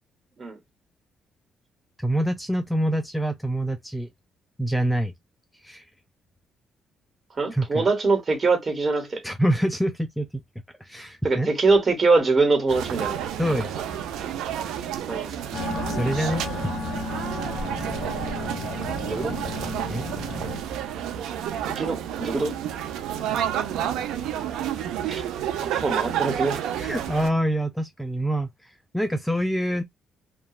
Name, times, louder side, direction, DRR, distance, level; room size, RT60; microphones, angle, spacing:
voice 1, 2.0-4.1 4.6-5.1 5.6-5.9 7.5-7.9 9.2-10.3 10.8-11.5 13.4-13.8 15.9-16.4 19.9-20.1 26.8-29.8, right 1 dB, 5° left, 0.4 m, -26 dB
voice 2, 7.4-9.2 11.2-13.7 15.1-15.3 19.1-19.4 21.6-22.6 25.1-25.2 25.6-26.6, right 3 dB, 35° right, 1.2 m, -23 dB
sound 1, 12.7-27.3, right 10 dB, 90° right, 0.5 m, -30 dB
sound 2, 15.5-20.6, left 3 dB, 55° left, 1.3 m, -33 dB
2.9 x 2.2 x 2.3 m
cardioid pair, 90°, 0 cm